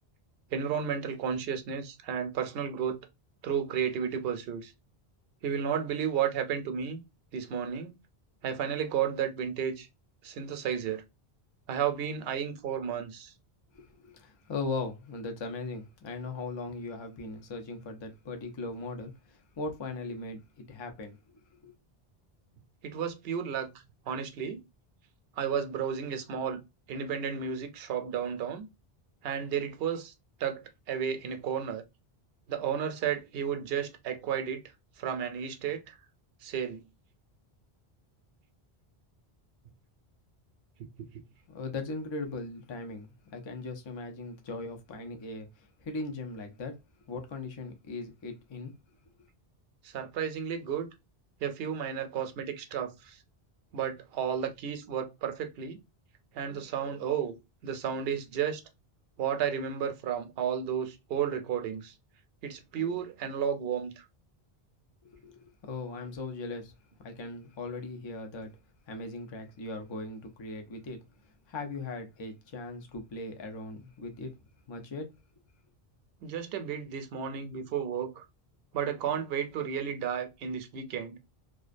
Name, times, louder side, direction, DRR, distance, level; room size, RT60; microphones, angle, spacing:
voice 1, 0.5-3.1 3.4-4.7 5.4-7.0 7.3-7.9 8.4-9.9 10.2-11.0 11.7-13.3 22.8-23.7 24.1-24.6 25.4-26.6 26.9-28.7 29.2-30.1 30.4-31.8 32.5-34.7 35.0-35.9 36.4-36.8 41.0-41.1 49.8-50.9 51.4-53.2 53.7-55.8 56.3-57.4 57.6-58.6 59.2-61.9 62.4-64.0 76.2-78.2 78.7-81.2, right 8 dB, 70° right, 0.8 m, -32 dB
voice 2, 13.7-21.7 41.5-46.8 47.1-48.7 65.0-66.7 67.0-68.5 68.9-71.0 71.5-74.3 74.7-75.1, left 3 dB, 40° left, 0.4 m, -39 dB
2.4 x 2.2 x 2.4 m
omnidirectional pair, 1.0 m